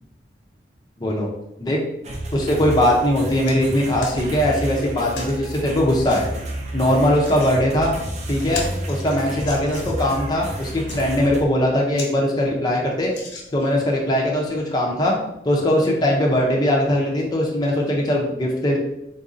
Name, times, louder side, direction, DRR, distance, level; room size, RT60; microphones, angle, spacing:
sound 1, 2.0-11.4, right 1 dB, 40° right, 0.6 m, -31 dB
voice 1, 2.3-6.3 6.7-7.9 8.3-13.1 13.5-15.2 15.4-18.8, left 1 dB, 25° left, -2 dB, 0.6 m, -20 dB
sound 2, 3.4-3.6 4.0-4.2 5.1-5.4 6.0-6.2 7.0-7.5 8.0-8.1 8.4-10.1 10.7-11.0 11.5-11.6 11.9-12.1 12.5-12.6 13.1-13.8 14.5-14.6, left 3 dB, 90° left, 1.0 m, -36 dB
3.8 x 2.6 x 3.8 m, 0.83 s
head